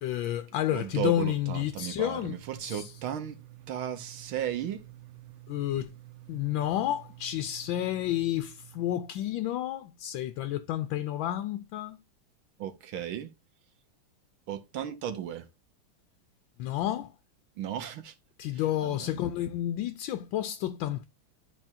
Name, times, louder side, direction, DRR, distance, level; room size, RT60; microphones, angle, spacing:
voice 1, 0.0-2.9 5.5-5.9 6.3-12.0 16.6-17.1 18.4-21.0, left 12 dB, 75° left, 1.3 m, -30 dB
voice 2, 0.7-5.8 6.3-6.5 12.6-13.3 14.5-15.5 17.6-18.1 18.8-19.2, right 10 dB, 70° right, 1.6 m, -36 dB
12.5 x 4.3 x 2.6 m
omnidirectional pair, 2.4 m